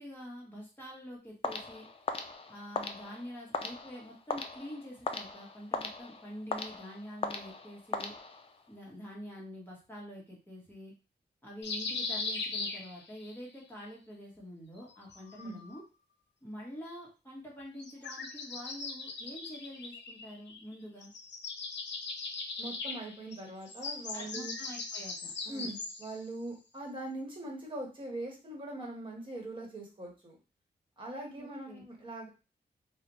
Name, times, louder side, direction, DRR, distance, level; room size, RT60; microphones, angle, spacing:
voice 1, 0.0-1.9 2.5-8.1 8.7-10.9 11.4-15.8 16.4-21.1 24.1-25.7 31.3-31.8, equal, 10° left, -4 dB, 1.0 m, -46 dB
sound 1, 1.4-8.7, left 3 dB, 30° left, 0.3 m, -39 dB
sound 2, 11.6-13.4 14.8-15.8 17.8-20.7 21.0-26.2, left 3 dB, 85° left, 0.5 m, -39 dB
voice 2, 22.6-24.5 25.5-30.4 31.0-32.3, right 2 dB, 30° right, -2 dB, 1.1 m, -42 dB
3.9 x 2.1 x 2.9 m, 0.31 s
wide cardioid pair, 170°, 18 cm